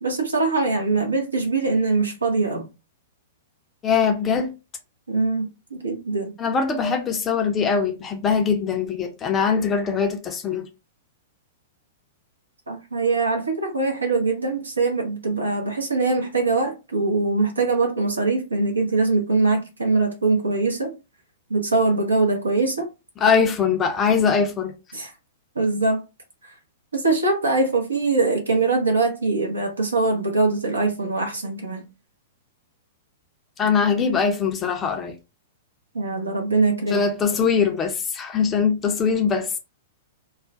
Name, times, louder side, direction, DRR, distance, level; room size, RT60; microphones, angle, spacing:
voice 1, 0.0-2.7 5.1-6.3 12.7-21.0 21.5-22.9 24.9-25.1 25.6-26.0 26.4-26.6 26.9-31.8 35.9-37.1, right 3 dB, 75° right, 0.6 m, -22 dB
voice 2, 3.8-4.5 6.4-10.7 23.2-24.7 33.6-35.1 36.9-39.6, left 6 dB, 20° left, 0.4 m, -22 dB
2.3 x 2.1 x 3.7 m
figure-of-eight pair, 105°, 0 cm